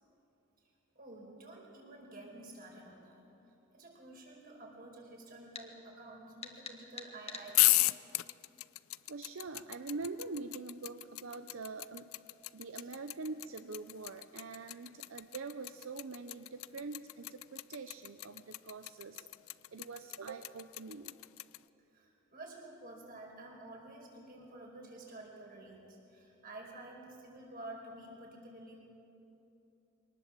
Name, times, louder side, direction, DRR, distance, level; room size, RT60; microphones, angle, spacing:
voice 1, 0.9-3.2 3.7-7.8 12.8-12.9 21.9-28.8, right 2 dB, 45° right, -1 dB, 4.8 m, -50 dB
sound 1, 5.5-5.7 6.4-7.5, left 6 dB, 30° left, 1.5 m, -45 dB
sound 2, 7.5-21.6, left 19 dB, 75° left, 0.5 m, -33 dB
voice 2, 9.1-12.1 12.5-19.3 19.7-21.2, right 3 dB, 70° right, 8 dB, 0.6 m, -44 dB
24.0 x 19.0 x 7.5 m, 2.9 s
head